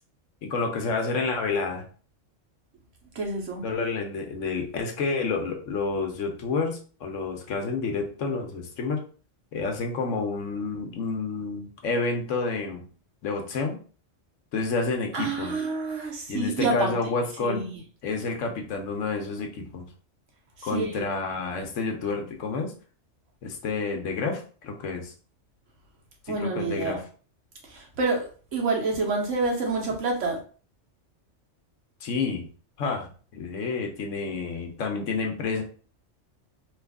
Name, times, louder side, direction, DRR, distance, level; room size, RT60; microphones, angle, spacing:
voice 1, 0.4-1.9 3.6-9.0 9.5-12.8 13.2-13.8 14.5-15.5 16.3-17.7 18.0-19.9 20.6-22.7 23.4-25.1 26.3-27.0 32.0-32.5 32.8-35.6, left 4 dB, 90° left, 3 dB, 1.1 m, -29 dB
voice 2, 3.1-3.6 15.1-16.9 17.4-17.7 20.6-21.0 26.3-27.0 27.6-30.4, right 3 dB, 80° right, 0 dB, 1.3 m, -28 dB
3.2 x 2.4 x 3.5 m, 0.39 s
omnidirectional pair, 1.3 m